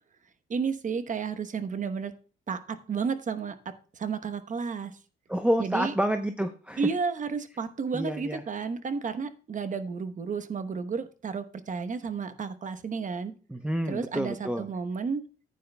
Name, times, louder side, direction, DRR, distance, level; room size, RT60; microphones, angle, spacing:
voice 1, 0.5-2.1 2.5-5.0 5.6-5.9 6.8-13.3 13.9-15.2, right 5 dB, 40° right, 10 dB, 1.0 m, -32 dB
voice 2, 5.3-6.8 7.9-8.4 13.5-14.6, equal, 5° right, 6 dB, 0.7 m, -28 dB
14.5 x 9.3 x 2.2 m, 0.38 s
cardioid pair, 90°, 20 cm